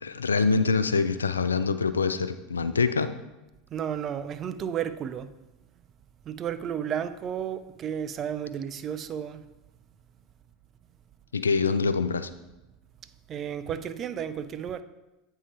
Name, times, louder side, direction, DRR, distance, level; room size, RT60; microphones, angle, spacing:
voice 1, 0.0-3.1 11.3-12.3, left 4 dB, 85° left, 0.3 m, -25 dB
voice 2, 3.7-5.3 6.3-9.4 13.3-14.8, right 8 dB, 40° right, 0.4 m, -32 dB
8.4 x 3.7 x 4.3 m
hypercardioid pair, 80°, 0 cm